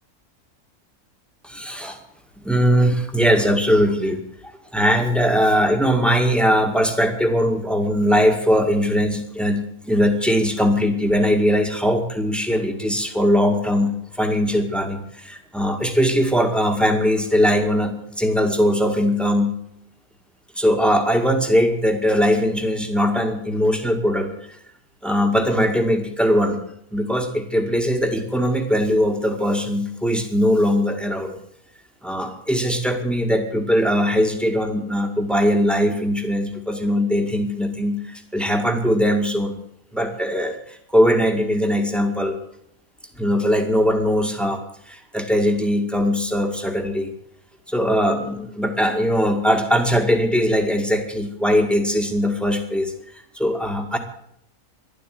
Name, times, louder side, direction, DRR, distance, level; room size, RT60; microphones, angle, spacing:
voice 1, 1.4-2.0 2.4-4.2 4.7-19.5 20.6-24.3 25.0-26.6 26.9-31.3 32.0-39.5 39.9-40.6 40.9-42.4 43.2-47.1 47.7-52.9 53.3-54.0, equal, ahead, 4 dB, 1.9 m, -20 dB
12.0 x 11.5 x 9.4 m, 0.73 s
omnidirectional pair, 1.6 m